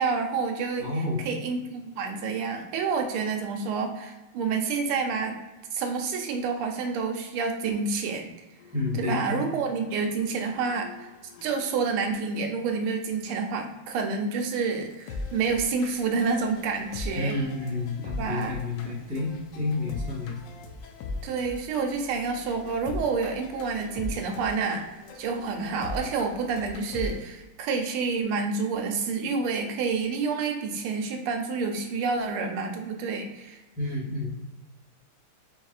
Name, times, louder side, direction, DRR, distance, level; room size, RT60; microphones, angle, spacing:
voice 1, 0.0-5.4 5.7-8.3 8.9-11.1 11.4-17.4 18.2-18.6 21.2-33.6, right 4 dB, 85° right, 4 dB, 1.5 m, -29 dB
voice 2, 0.8-1.3 8.7-9.4 17.1-19.3 19.5-20.4 33.8-34.3, left 2 dB, 5° right, -7 dB, 0.6 m, -29 dB
sound 1, 8.6-12.2 12.9-13.0 13.6-13.7 14.0-14.1 14.3-27.2, left 3 dB, 75° left, 1.1 m, -40 dB
4.6 x 3.5 x 2.4 m, 1.1 s
omnidirectional pair, 2.4 m